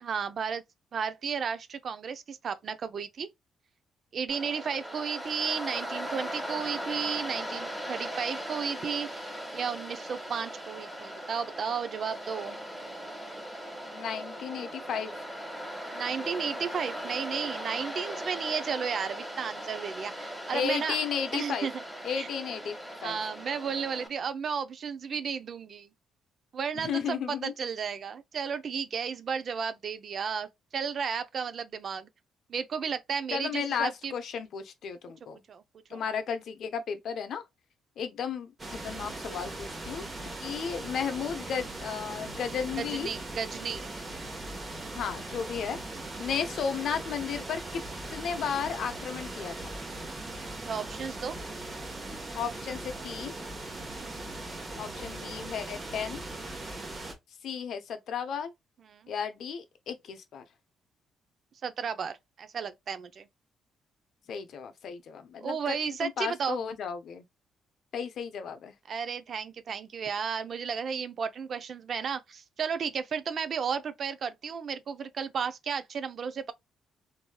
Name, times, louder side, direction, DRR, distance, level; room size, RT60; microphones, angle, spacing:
voice 1, 0.0-0.6 0.9-3.3 4.1-12.6 15.9-21.0 21.3-21.8 22.1-22.3 23.0-25.9 26.5-32.1 32.5-34.1 35.5-35.6 35.9-36.0 42.8-43.9 50.7-51.3 53.7-54.1 56.6-56.8 58.9-59.1 61.6-63.3 65.4-66.6 68.9-76.5, right 6 dB, 55° right, 0.4 m, -33 dB
Waves surf, 4.3-24.1, equal, 5° right, 1.3 m, -39 dB
voice 2, 13.9-15.2 20.5-21.7 22.0-22.8 23.0-23.2 26.7-27.5 33.3-35.4 35.9-37.5 38.0-40.0 40.4-43.1 44.9-47.8 48.1-49.7 52.3-53.3 54.7-56.2 57.4-58.5 59.1-60.4 64.3-67.2 67.9-68.7, left 7 dB, 65° left, 0.6 m, -34 dB
sound 1, 38.6-57.1, right 2 dB, 30° right, 1.0 m, -39 dB
3.1 x 2.6 x 2.2 m
cardioid pair, 90°, 0 cm